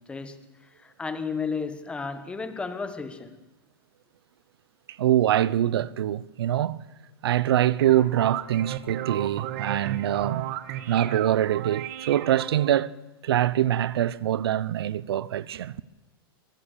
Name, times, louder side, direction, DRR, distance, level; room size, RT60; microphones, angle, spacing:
voice 1, 0.0-3.4, left 5 dB, 10° left, 1.4 m, -33 dB
voice 2, 4.9-6.8 7.2-10.5 10.9-13.0 13.2-15.8, right 12 dB, 85° right, 0.8 m, -24 dB
sound 1, 7.8-12.8, right 13 dB, 45° right, 1.7 m, -35 dB
23.0 x 20.0 x 6.9 m
supercardioid pair, 160°, 13 cm